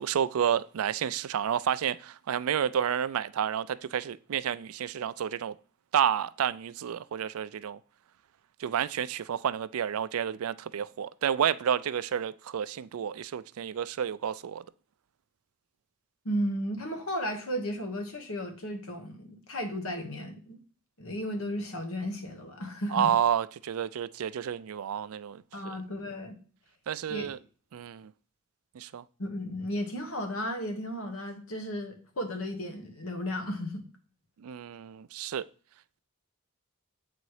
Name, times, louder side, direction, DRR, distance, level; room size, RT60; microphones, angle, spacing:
voice 1, 0.0-5.5 5.9-7.8 8.6-14.6 22.9-25.7 26.9-27.4 27.7-28.1 28.8-29.0 34.4-35.4, right 9 dB, 80° right, 0.4 m, -30 dB
voice 2, 16.2-20.6 21.0-23.1 25.5-26.4 27.1-27.3 29.2-33.8, equal, 70° left, 1.4 m, -34 dB
7.7 x 4.0 x 4.8 m
head